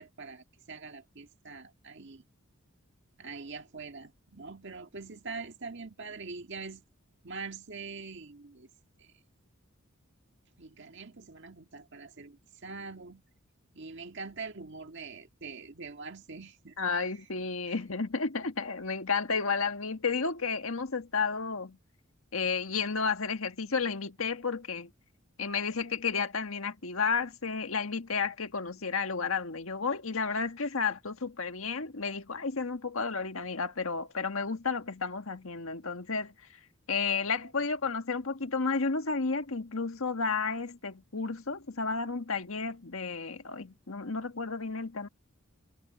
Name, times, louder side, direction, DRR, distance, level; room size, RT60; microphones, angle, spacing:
voice 1, 0.0-2.2 3.2-6.8 7.2-8.7 9.0-9.1 10.6-13.2 13.7-16.8 17.7-17.8, right 4 dB, 60° right, 1.8 m, -44 dB
voice 2, 16.8-21.8 22.3-24.9 25.4-36.3 36.9-45.1, left 4 dB, 75° left, 1.6 m, -32 dB
head